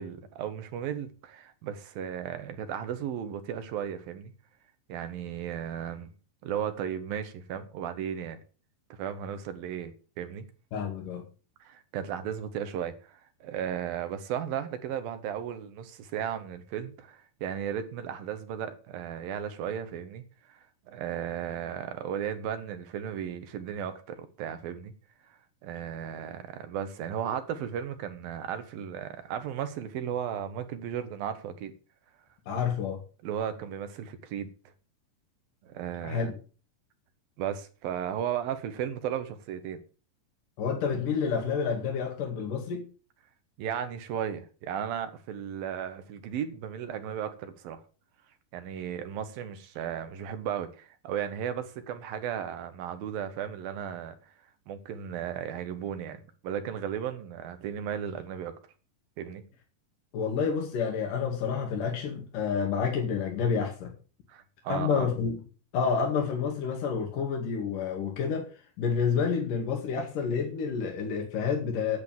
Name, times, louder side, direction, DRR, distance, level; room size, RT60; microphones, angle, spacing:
voice 1, 0.0-4.3 4.9-6.1 6.4-8.4 8.9-9.9 10.2-10.5 11.6-20.2 20.5-24.9 25.6-31.7 33.2-34.5 35.6-36.3 37.4-39.8 43.6-47.8 48.5-54.2 54.7-58.5 59.2-59.4 64.3-65.1, right 9 dB, 80° right, 3.2 m, -35 dB
voice 2, 10.7-11.2 32.5-33.0 36.0-36.3 40.6-42.9 60.1-63.9 64.7-65.4 65.7-68.5 68.8-72.0, left 6 dB, 65° left, 3.7 m, -29 dB
10.5 x 8.3 x 7.3 m
omnidirectional pair, 4.1 m